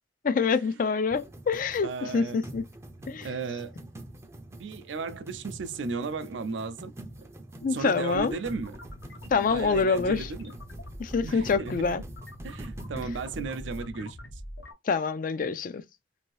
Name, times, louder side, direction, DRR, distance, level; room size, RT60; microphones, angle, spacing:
voice 1, 0.2-2.6 3.1-3.3 7.6-8.4 9.3-10.3 11.0-12.0 14.9-15.8, left 5 dB, 45° left, 0.4 m, -26 dB
sound 1, 1.1-13.9, right 1 dB, 15° right, 0.4 m, -46 dB
voice 2, 1.8-2.4 3.2-3.8 4.6-6.9 7.2-7.3 7.7-8.8 9.1-10.5 11.2-12.0 12.4-14.2, right 4 dB, 75° right, 0.4 m, -35 dB
sound 2, 7.6-14.7, equal, 80° left, 0.8 m, -43 dB
2.7 x 2.6 x 3.1 m
head